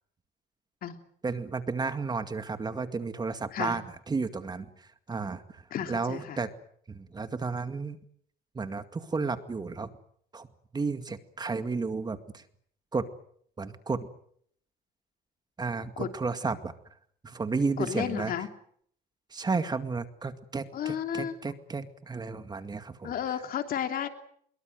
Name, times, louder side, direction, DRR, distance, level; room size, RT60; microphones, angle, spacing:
voice 1, 1.2-5.6 5.9-6.5 6.9-8.0 8.5-9.9 10.3-10.5 10.7-12.4 12.9-13.1 13.6-14.1 15.6-16.7 17.2-18.3 19.3-23.1, right 4 dB, 25° right, 10 dB, 2.2 m, -32 dB
voice 2, 5.7-6.4 16.0-16.1 17.8-18.5 20.7-21.4 23.0-24.1, left 9 dB, 60° left, 7 dB, 3.1 m, -32 dB
24.5 x 22.5 x 7.9 m, 0.65 s
cardioid pair, 110°, 17 cm